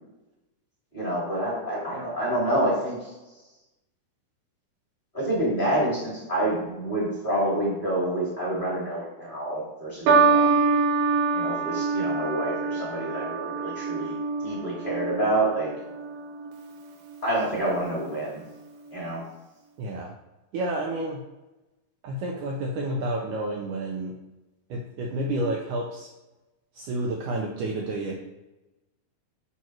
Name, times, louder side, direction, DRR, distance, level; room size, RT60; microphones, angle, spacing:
voice 1, 0.9-3.0 5.1-10.6 11.3-14.1 14.4-15.7 17.2-18.4 18.9-19.2, right 1 dB, 15° left, -6 dB, 2.0 m, -27 dB
sound 1, 10.1-16.6 17.4-17.8, right 4 dB, 70° right, 2.4 m, -25 dB
voice 2, 19.8-20.1 20.5-21.2 22.0-24.2 24.7-26.1 26.7-28.1, right 1 dB, 90° right, 0 dB, 1.7 m, -30 dB
6.9 x 4.1 x 6.0 m, 1.0 s
omnidirectional pair, 4.7 m